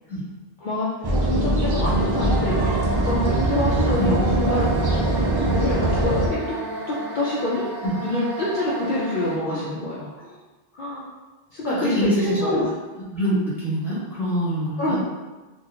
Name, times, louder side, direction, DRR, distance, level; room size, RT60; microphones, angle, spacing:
sound 1, 1.0-6.3, right 1 dB, 35° right, 0.4 m, -22 dB
voice 1, 1.3-4.7 5.4-6.6 6.9-7.7 8.0-10.1 10.7-11.1 11.5-12.7 14.8-15.0, left 1 dB, 60° left, -6 dB, 0.7 m, -26 dB
sound 2, 1.8-9.4, right 3 dB, 65° right, 0.9 m, -33 dB
voice 2, 11.7-12.6 13.1-15.0, equal, ahead, -10 dB, 1.3 m, -25 dB
3.9 x 2.4 x 2.8 m, 1.2 s
omnidirectional pair, 1.0 m